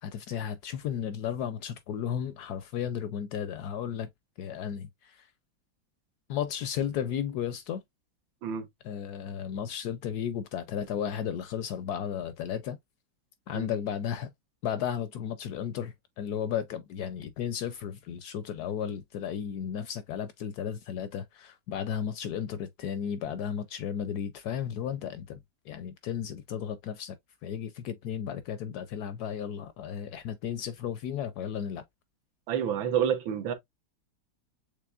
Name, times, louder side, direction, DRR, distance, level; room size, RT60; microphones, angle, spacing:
voice 1, 0.0-4.1 4.4-5.3 6.3-7.8 8.8-12.8 13.5-14.3 14.6-25.4 25.6-27.2 27.4-31.8, left 8 dB, 75° left, 0.9 m, -34 dB
voice 2, 32.5-33.5, right 9 dB, 85° right, 1.7 m, -28 dB
6.8 x 3.1 x 2.3 m
omnidirectional pair, 2.1 m